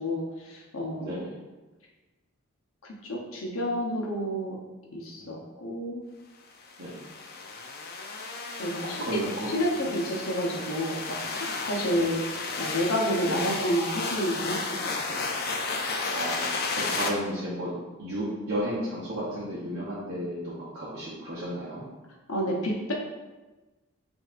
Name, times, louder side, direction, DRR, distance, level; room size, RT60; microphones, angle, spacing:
voice 1, 0.0-1.1 2.8-4.6 4.9-6.0 8.6-9.2 9.5-11.2 11.6-12.2 12.6-15.3 22.3-22.9, equal, 70° left, -2 dB, 0.9 m, -30 dB
voice 2, 1.0-1.3 5.2-5.3 6.8-6.9 8.8-9.5 9.8-9.9 13.2-13.4 16.1-16.4 16.7-17.7 18.0-21.8, right 1 dB, 55° right, -10 dB, 0.9 m, -33 dB
sound 1, 6.6-17.1, left 4 dB, 50° left, 0.5 m, -33 dB
5.5 x 2.7 x 2.5 m, 1.2 s
head